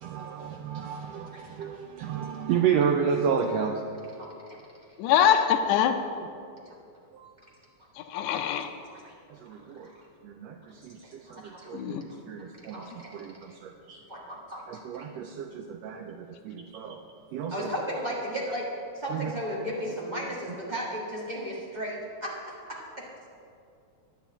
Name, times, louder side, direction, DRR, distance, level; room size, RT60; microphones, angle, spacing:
voice 1, 0.0-3.8 7.1-7.3 9.3-9.9 10.2-14.0 14.7-17.0 17.3-17.7 19.1-19.3, right 7 dB, 90° right, 4 dB, 1.4 m, -31 dB
voice 2, 4.2-4.6 8.9-9.1 9.8-9.9 11.2-11.7 12.1-12.2 12.7-13.1 14.1-15.0 17.5-18.7 18.9-23.3, equal, 30° right, -5 dB, 0.8 m, -35 dB
voice 3, 5.0-5.9 8.0-8.7 11.7-12.0, left 9 dB, 80° left, 5 dB, 2.0 m, -23 dB
10.5 x 5.7 x 8.3 m, 2.5 s
omnidirectional pair, 3.5 m